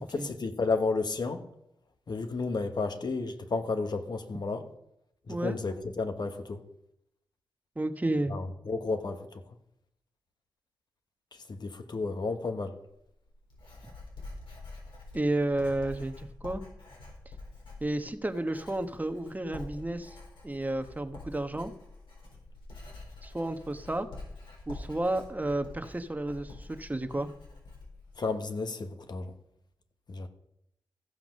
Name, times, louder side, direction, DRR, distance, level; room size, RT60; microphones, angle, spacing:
voice 1, 0.0-1.4 2.1-4.6 5.3-6.6 8.3-9.2 11.5-12.7 28.2-29.3 30.1-30.3, left 3 dB, 55° left, 1.3 m, -32 dB
voice 2, 7.8-8.4 15.1-16.6 17.8-20.2 20.4-21.7 23.2-24.1 24.7-27.3, right 1 dB, 20° right, 1.1 m, -31 dB
Writing, 12.9-28.2, left 2 dB, 85° left, 4.2 m, -47 dB
15.0 x 5.8 x 5.3 m
cardioid pair, 50°, 8 cm